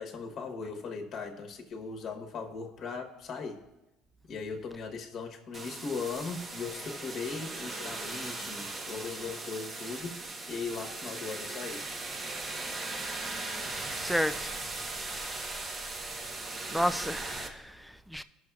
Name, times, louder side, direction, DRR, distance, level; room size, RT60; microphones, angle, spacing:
voice 1, 0.0-3.6 4.3-11.8, left 4 dB, 45° left, 1.2 m, -38 dB
sound 1, 5.5-17.5, right 2 dB, 25° right, 0.9 m, -38 dB
voice 2, 14.0-14.6 16.1-16.3 16.7-18.2, equal, ahead, 0.4 m, -32 dB
18.0 x 6.3 x 2.4 m
cardioid pair, 130°, 0 cm